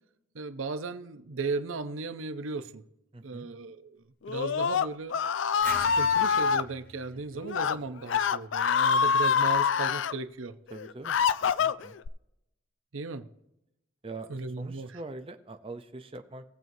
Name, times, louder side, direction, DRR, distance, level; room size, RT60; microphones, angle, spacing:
voice 1, 0.3-2.8 3.2-5.1 5.7-10.5 12.9-13.3 14.3-15.0, right 4 dB, 90° right, 0.7 m, -36 dB
voice 2, 3.1-3.5 7.3-7.5 10.7-12.0 14.0-14.3 14.6-16.4, right 2 dB, 30° right, 0.6 m, -43 dB
Screaming, 4.2-6.6 7.4-7.7 8.1-10.1 10.7-12.1, left 6 dB, 70° left, 0.4 m, -25 dB
sound 1, 5.6-8.3, right 1 dB, 10° left, 4.4 m, -43 dB
20.0 x 7.6 x 2.7 m
head